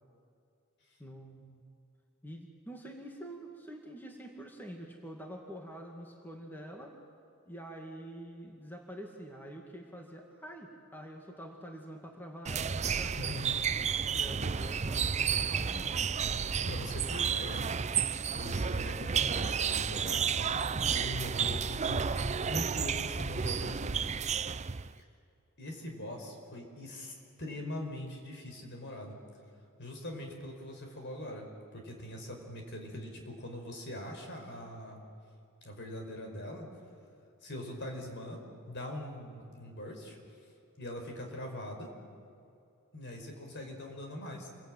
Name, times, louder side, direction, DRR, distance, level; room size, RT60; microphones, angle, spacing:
voice 1, 1.0-1.6 2.2-6.9 7.4-13.5 14.1-16.0, right 1 dB, 10° left, 1 dB, 2.1 m, -46 dB
sound 1, 12.5-24.9, right 6 dB, 30° right, 0.6 m, -31 dB
voice 2, 13.2-13.5 15.2-15.3 16.6-17.6 18.4-20.3 20.9-23.9 25.6-29.2 29.8-35.0 35.6-36.7 37.4-38.4 38.7-40.2 40.8-41.9 42.9-44.5, left 1 dB, 55° left, 3 dB, 5.0 m, -42 dB
28.5 x 22.5 x 9.1 m, 2.5 s
head